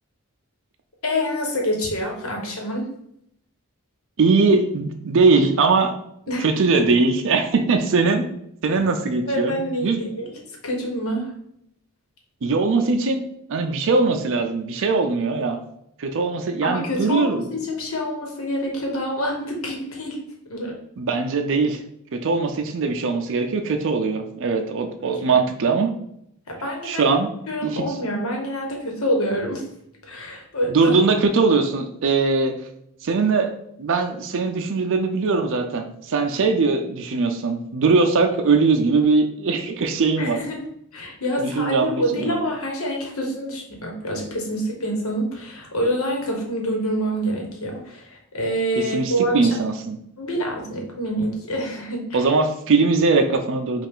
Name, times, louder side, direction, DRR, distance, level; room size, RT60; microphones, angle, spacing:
voice 1, 1.0-2.9 6.3-6.5 9.3-10.3 10.6-11.3 16.6-20.2 20.5-20.7 25.3-25.4 26.5-27.1 27.5-29.6 30.0-30.9 40.2-40.6 40.9-49.5 50.2-52.3, equal, 65° left, 0 dB, 1.2 m, -26 dB
voice 2, 4.2-5.9 6.4-8.3 8.6-10.0 12.4-15.6 16.0-17.5 21.0-21.8 22.1-25.9 26.8-27.3 27.6-27.8 30.7-32.5 33.0-33.5 33.8-40.4 41.4-42.4 48.9-50.0 52.1-53.9, right 4 dB, 60° right, 5 dB, 0.4 m, -21 dB
5.5 x 2.5 x 3.6 m, 0.74 s
head